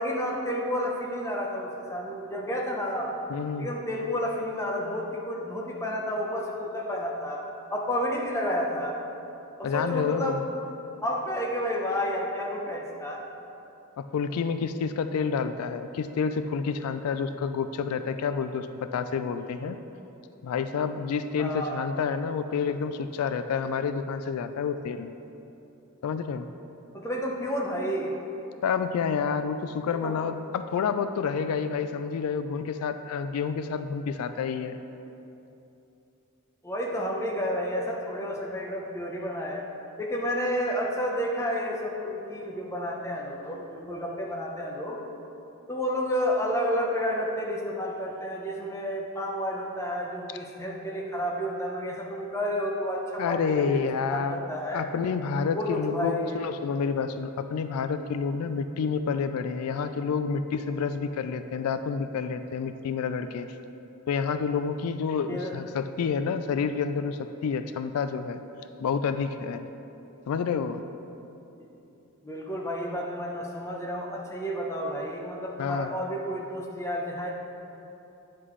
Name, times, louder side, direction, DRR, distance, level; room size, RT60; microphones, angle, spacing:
voice 1, 0.0-3.1 3.6-7.4 7.7-9.0 9.6-10.4 11.0-13.2 21.4-21.8 26.9-28.1 29.9-30.1 36.6-39.6 40.0-45.0 45.7-53.4 53.7-54.8 55.5-56.4 65.3-65.5 71.6-71.7 72.2-77.3, equal, 15° left, -2 dB, 0.8 m, -30 dB
voice 2, 3.3-3.7 9.6-10.4 14.0-19.8 20.4-25.1 26.0-26.5 28.6-34.8 53.2-54.4 54.7-63.5 64.1-68.4 68.8-69.7 70.3-70.8 75.6-75.9, left 6 dB, 85° left, 10 dB, 0.3 m, -29 dB
9.5 x 5.9 x 3.1 m, 2.9 s
head